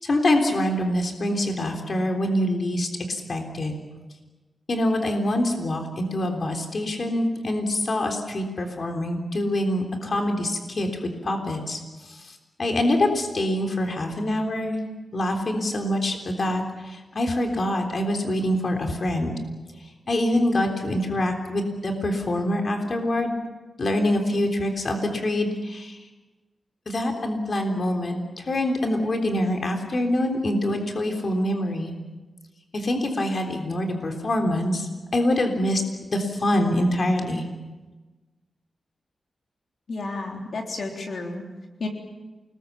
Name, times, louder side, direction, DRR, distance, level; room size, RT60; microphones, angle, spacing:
voice 1, 0.0-3.7 4.7-11.8 12.6-14.8 15.1-19.4 20.1-23.4 23.8-26.0 26.9-31.9 32.7-35.8 36.1-37.4, left 1 dB, 45° left, 3 dB, 3.5 m, -25 dB
voice 2, 39.9-41.4 41.8-41.9, left 3 dB, 60° left, 1 dB, 3.5 m, -31 dB
29.0 x 20.5 x 7.2 m, 1.2 s
wide cardioid pair, 135°, 0 cm